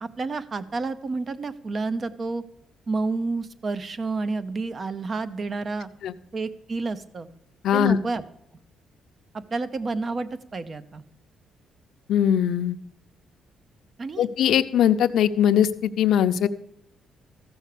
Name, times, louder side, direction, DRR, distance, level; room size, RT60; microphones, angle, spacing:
voice 1, 0.0-2.4 2.9-5.9 6.3-7.3 7.7-8.2 9.3-11.0 14.0-14.3, right 3 dB, 40° right, 13 dB, 0.8 m, -30 dB
voice 2, 7.6-8.0 12.1-12.8 14.2-16.5, left 9 dB, 75° left, 11 dB, 0.6 m, -20 dB
14.5 x 6.3 x 6.7 m, 0.78 s
cardioid pair, 90°, 0 cm